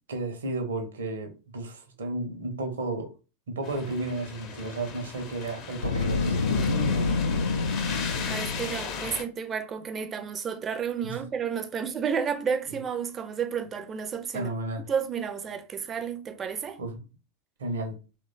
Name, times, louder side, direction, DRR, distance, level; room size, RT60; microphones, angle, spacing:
voice 1, 0.1-3.1 3.5-7.5 7.9-8.4 11.0-11.2 14.3-14.8 16.8-17.0 17.6-18.0, right 2 dB, 65° right, 0.8 m, -33 dB
sound 1, 3.6-9.2, left 5 dB, 35° left, 0.6 m, -37 dB
Boom, 5.7-8.9, left 4 dB, 70° left, 0.3 m, -27 dB
voice 2, 8.3-14.5 14.9-16.8, right 7 dB, 25° right, 0.5 m, -31 dB
3.0 x 2.2 x 4.0 m
figure-of-eight pair, 90°, 0 cm